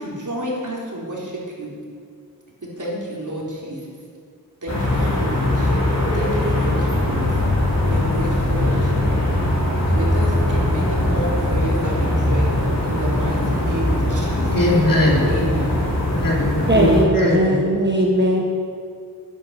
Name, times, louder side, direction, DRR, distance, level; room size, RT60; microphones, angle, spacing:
voice 1, 0.0-1.7 2.8-3.8 4.6-5.7 6.1-7.3 7.8-9.1 9.9-12.5 12.8-14.6 15.3-15.7, equal, 50° right, -5 dB, 3.7 m, -29 dB
sound 1, 4.7-17.0, left 1 dB, 45° left, 4.1 m, -21 dB
voice 2, 14.5-15.3 16.2-17.6, left 1 dB, 60° left, -3 dB, 3.0 m, -19 dB
voice 3, 16.7-18.4, right 1 dB, 30° right, -1 dB, 1.4 m, -18 dB
11.0 x 10.5 x 6.5 m, 2.2 s
wide cardioid pair, 75°, 38 cm